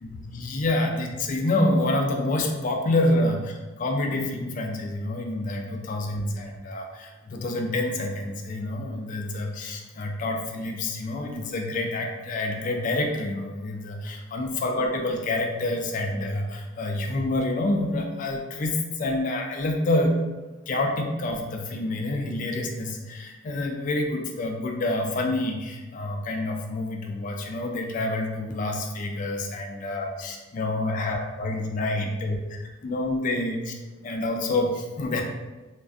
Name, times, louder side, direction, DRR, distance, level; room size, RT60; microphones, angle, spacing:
voice 1, 0.0-20.2 20.7-33.7 34.0-35.2, left 2 dB, 40° left, 2 dB, 0.3 m, -27 dB
2.4 x 2.3 x 2.3 m, 1.2 s
head